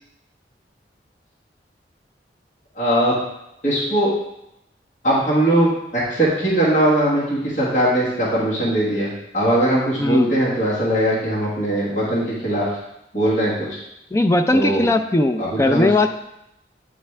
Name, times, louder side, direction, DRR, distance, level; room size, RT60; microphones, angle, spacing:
voice 1, 2.7-3.2 3.6-4.1 5.0-12.8 13.1-13.8 14.5-14.8 15.4-15.9, right 1 dB, 45° left, -9 dB, 1.5 m, -20 dB
voice 2, 10.0-10.3 14.1-16.1, left 2 dB, 15° left, 7 dB, 0.3 m, -18 dB
9.4 x 3.5 x 3.3 m, 0.86 s
head